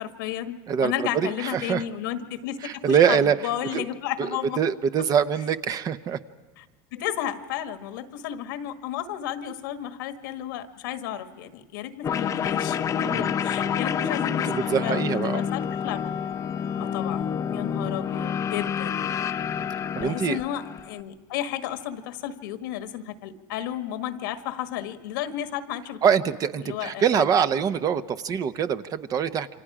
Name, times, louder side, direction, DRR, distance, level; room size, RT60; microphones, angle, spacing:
voice 1, 0.0-4.6 6.6-6.7 6.9-16.2 16.8-19.1 20.0-26.2 26.6-27.3, left 11 dB, 85° left, 8 dB, 1.6 m, -33 dB
voice 2, 0.7-1.8 2.6-3.3 3.7-3.8 4.2-4.3 4.6-6.2 13.1-13.3 14.5-15.4 16.8-16.9 17.8-17.9 20.0-20.4 26.0-29.5, right 7 dB, 35° right, 12 dB, 0.8 m, -24 dB
sound 1, 12.0-21.0, left 8 dB, 30° left, 0.7 m, -28 dB
28.5 x 25.0 x 4.9 m, 1.3 s
supercardioid pair, 125°, 11 cm